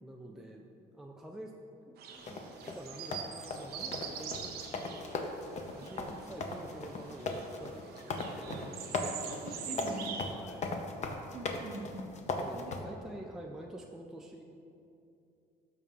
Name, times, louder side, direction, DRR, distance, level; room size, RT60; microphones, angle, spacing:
voice 1, 0.0-0.6 0.9-1.5 1.8-8.7 9.6-10.7 12.4-14.4, right 1 dB, 5° right, 0 dB, 0.4 m, -48 dB
sound 1, 2.0-10.2, right 7 dB, 70° right, 0.7 m, -44 dB
sound 2, 2.3-12.8, left 3 dB, 45° left, 0.7 m, -38 dB
voice 2, 9.3-10.1 11.3-12.1 12.5-12.8, right 2 dB, 40° right, 2 dB, 0.9 m, -44 dB
12.5 x 5.4 x 2.5 m, 2.7 s
cardioid pair, 110°, 17 cm